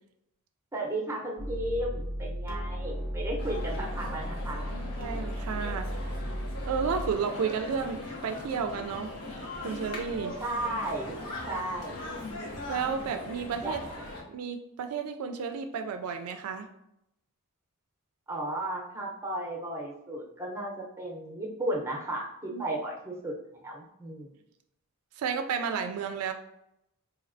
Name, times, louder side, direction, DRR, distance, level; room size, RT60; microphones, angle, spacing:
voice 1, 0.7-4.8 10.4-11.2 11.5-12.1 13.6-13.8 18.3-23.3 23.6-24.3, right 1 dB, 10° right, -2 dB, 0.7 m, -34 dB
sound 1, 1.4-7.1, equal, 40° left, 1.0 m, -35 dB
sound 2, 3.4-14.2, left 1 dB, 80° left, 1.0 m, -40 dB
voice 2, 5.0-6.2 6.7-9.1 9.6-10.3 12.7-13.8 14.3-16.7 22.5-22.6 25.2-26.3, right 6 dB, 75° right, 7 dB, 0.3 m, -32 dB
4.1 x 2.7 x 2.6 m, 0.82 s
head